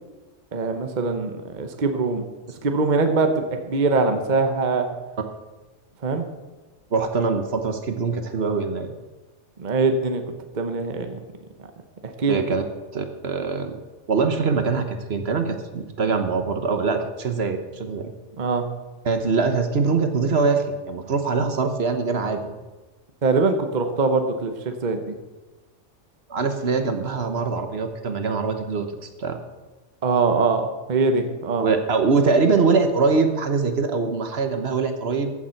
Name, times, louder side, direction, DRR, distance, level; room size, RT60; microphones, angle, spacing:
voice 1, 0.5-2.2 2.6-4.9 6.0-6.2 9.6-10.2 10.5-11.2 12.0-12.4 18.4-18.6 23.2-25.1 30.0-31.6, right 3 dB, 40° right, 6 dB, 1.0 m, -22 dB
voice 2, 6.9-8.9 12.3-12.6 12.9-13.8 14.1-18.1 19.0-22.5 26.3-28.9 29.2-29.4 31.6-35.3, right 4 dB, 60° right, 7 dB, 1.3 m, -23 dB
15.0 x 7.2 x 5.8 m, 1.2 s
omnidirectional pair, 1.2 m